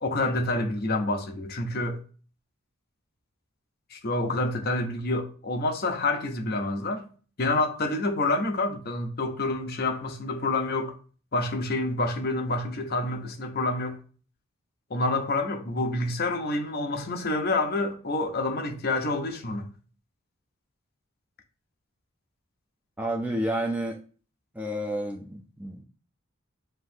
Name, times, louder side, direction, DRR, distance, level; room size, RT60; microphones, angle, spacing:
voice 1, 0.0-2.0 3.9-7.1 7.4-10.9 11.3-14.0 14.9-19.7, left 2 dB, 45° left, 0.6 m, -28 dB
voice 2, 23.0-24.0 24.5-25.8, right 1 dB, 5° right, 0.4 m, -30 dB
7.5 x 2.6 x 2.7 m
head